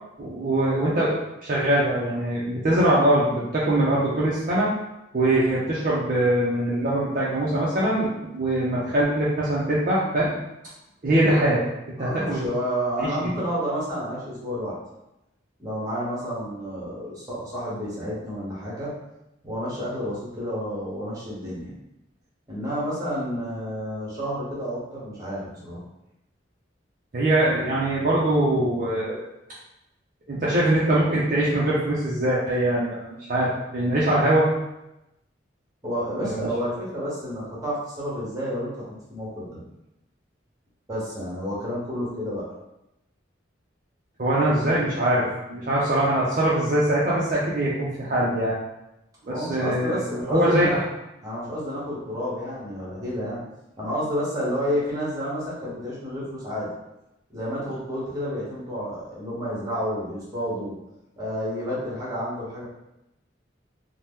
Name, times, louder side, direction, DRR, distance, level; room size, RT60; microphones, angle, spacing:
voice 1, 0.2-4.7 5.1-10.3 11.0-11.6 12.0-12.4 13.0-13.1 27.1-29.2 30.3-34.5 36.2-36.5 44.2-48.6 49.3-50.0 50.3-50.8, right 1 dB, 45° right, -7 dB, 0.5 m, -22 dB
voice 2, 12.0-14.8 15.6-18.9 19.4-21.7 22.5-25.8 35.8-39.6 40.9-42.5 49.3-50.7 51.2-53.4 53.8-56.7 57.3-60.7 61.2-62.6, equal, 20° right, -7 dB, 1.0 m, -30 dB
2.8 x 2.1 x 3.5 m, 0.90 s
head